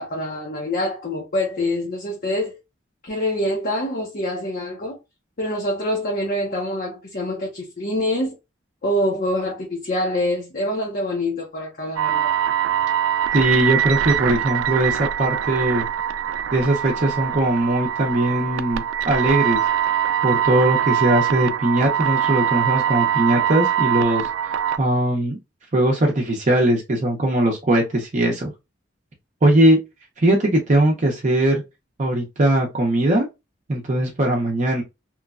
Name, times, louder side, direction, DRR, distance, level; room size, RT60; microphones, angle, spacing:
voice 1, 0.0-2.6 3.0-5.0 5.4-8.3 8.8-12.3, left 1 dB, 45° left, 0.7 m, -25 dB
sound 1, 12.0-24.8, right 10 dB, 80° right, 0.3 m, -23 dB
voice 2, 13.3-15.9 16.5-19.7 20.2-25.4 25.7-28.5 29.4-29.8 30.2-31.6 32.0-33.3 33.7-34.8, right 1 dB, 40° right, 0.6 m, -20 dB
3.0 x 2.2 x 2.3 m
head